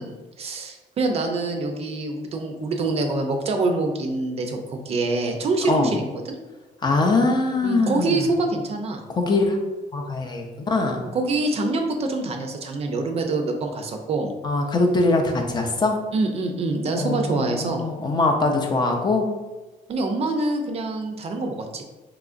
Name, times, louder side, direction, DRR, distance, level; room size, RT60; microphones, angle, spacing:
voice 1, 0.0-6.4 7.6-9.0 11.1-14.3 16.1-17.8 19.9-21.8, right 2 dB, 40° right, 4 dB, 0.4 m, -25 dB
voice 2, 6.8-8.2 9.2-9.6 9.9-11.0 14.4-16.0 17.0-19.3, left 3 dB, 30° left, 2 dB, 0.4 m, -22 dB
3.6 x 2.9 x 2.5 m, 1.2 s
cardioid pair, 130°, 16 cm